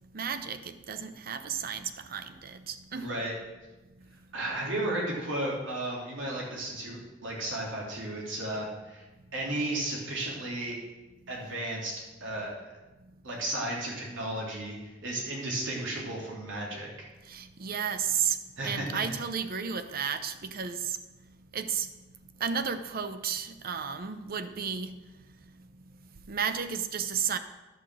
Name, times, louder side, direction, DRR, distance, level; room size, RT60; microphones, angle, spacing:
voice 1, 0.1-3.1 17.3-18.4 18.6-21.0 21.5-21.9 22.4-25.0 26.3-27.4, right 7 dB, 50° right, 10 dB, 0.7 m, -32 dB
voice 2, 2.9-3.3 4.3-9.0 9.3-10.8 11.3-11.9 12.2-12.6 13.2-16.9 18.6-19.0, right 1 dB, 75° right, -3 dB, 3.0 m, -34 dB
11.0 x 5.9 x 6.2 m, 1.1 s
head